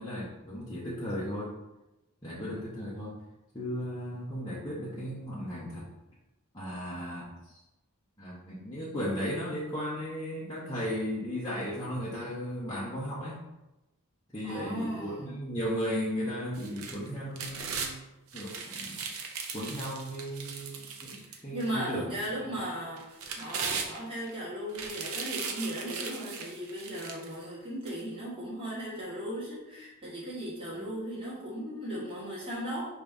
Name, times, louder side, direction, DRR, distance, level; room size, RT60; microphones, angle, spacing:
voice 1, 0.0-1.5 2.2-3.2 3.5-5.9 6.5-7.6 8.2-13.4 14.3-18.0 18.3-19.0 19.5-22.1 22.4-22.7 30.8-30.9, equal, 15° left, -9 dB, 0.8 m, -36 dB
voice 2, 14.4-15.4 21.3-32.8, right 1 dB, 25° right, -8 dB, 1.4 m, -37 dB
sound 1, 16.5-17.9 18.3-21.7 22.2-22.3 23.0-24.3 24.7-27.4 27.9-28.0, right 5 dB, 70° right, 0.6 m, -38 dB
5.1 x 2.7 x 3.5 m, 0.98 s
head